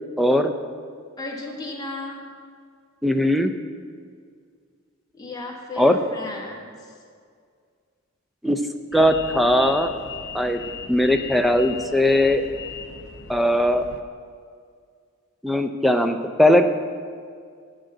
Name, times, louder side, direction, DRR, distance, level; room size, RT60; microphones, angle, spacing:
voice 1, 0.2-0.5 3.0-3.5 5.8-6.0 8.4-8.6 8.9-9.9 10.3-10.6 10.9-12.5 13.3-13.9 15.4-16.7, left 1 dB, ahead, 7 dB, 0.4 m, -19 dB
voice 2, 1.2-2.3 5.1-6.8, left 2 dB, 20° left, -2 dB, 1.4 m, -34 dB
sound 1, 8.9-14.0, left 6 dB, 55° left, 0.6 m, -38 dB
8.6 x 6.4 x 7.7 m, 2.1 s
head